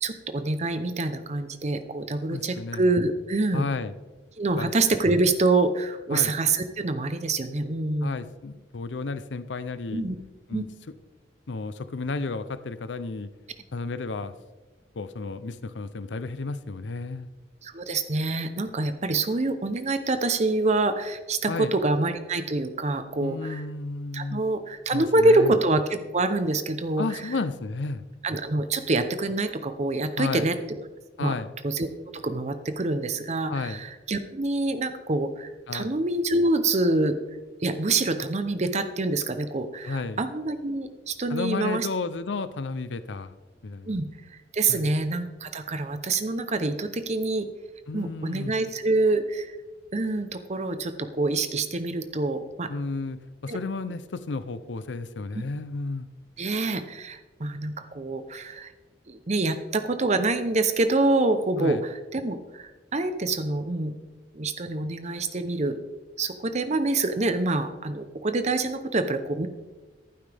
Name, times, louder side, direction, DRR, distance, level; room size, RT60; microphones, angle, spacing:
voice 1, 0.0-3.7 4.4-8.2 9.9-10.2 10.5-10.6 17.6-23.6 24.1-25.8 26.1-27.3 28.2-30.5 31.2-31.3 31.6-31.9 32.1-37.1 37.6-41.9 43.9-44.1 44.3-47.5 47.9-49.6 49.9-52.7 53.5-53.6 56.4-58.7 59.1-63.9 64.3-65.8 66.2-69.5, right 2 dB, 40° right, 9 dB, 0.7 m, -26 dB
voice 2, 2.3-2.8 3.5-3.9 4.6-4.7 6.1-6.3 8.0-10.1 10.5-10.7 11.5-13.3 13.7-14.3 15.0-17.3 21.5-21.7 23.2-24.4 24.9-25.6 27.0-28.0 30.2-30.5 31.2-31.5 33.5-33.8 35.7-35.9 39.8-40.2 41.3-43.3 43.6-43.9 44.7-44.9 47.9-48.5 52.7-56.1 61.6-61.8, left 3 dB, 85° left, 13 dB, 0.6 m, -32 dB
14.5 x 12.0 x 3.5 m, 1.2 s
head